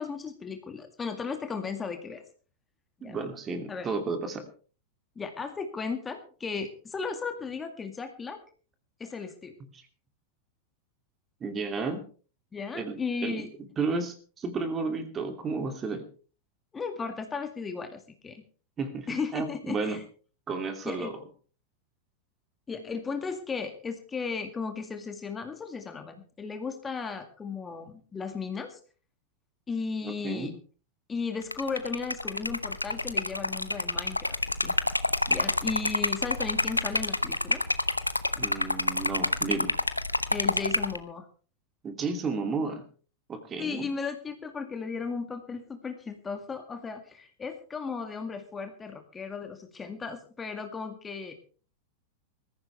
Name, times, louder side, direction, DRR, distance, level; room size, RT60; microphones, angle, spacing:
voice 1, 0.0-2.2 3.0-3.2 3.7-3.9 5.2-8.4 9.0-9.6 12.5-13.5 16.7-18.4 19.1-20.0 20.8-21.1 22.7-28.8 29.7-30.5 31.1-34.8 35.3-37.6 40.3-41.3 43.6-51.3, left 5 dB, 15° left, 6 dB, 2.0 m, -35 dB
voice 2, 3.0-4.5 11.4-12.0 12.7-13.4 13.8-16.0 18.8-20.0 20.5-21.1 30.0-30.5 38.4-39.7 41.8-42.9 43.3-43.9, right 4 dB, 25° right, 7 dB, 2.7 m, -32 dB
Liquid, 31.4-41.0, left 2 dB, 85° left, 0.9 m, -28 dB
20.5 x 14.5 x 3.4 m, 0.40 s
figure-of-eight pair, 90°, 0 cm